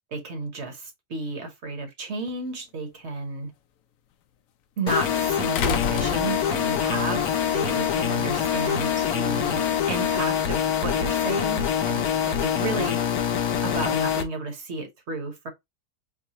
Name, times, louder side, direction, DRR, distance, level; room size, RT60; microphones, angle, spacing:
voice 1, 0.1-3.5 4.8-13.0 13.6-15.5, right 3 dB, 50° right, 1.2 m, -32 dB
sound 1, 2.3-2.4 5.5-6.8 8.2-8.3, left 8 dB, 70° left, 0.9 m, -30 dB
sound 2, 4.9-14.2, left 9 dB, 90° left, 1.2 m, -25 dB
4.8 x 2.2 x 2.9 m
omnidirectional pair, 1.6 m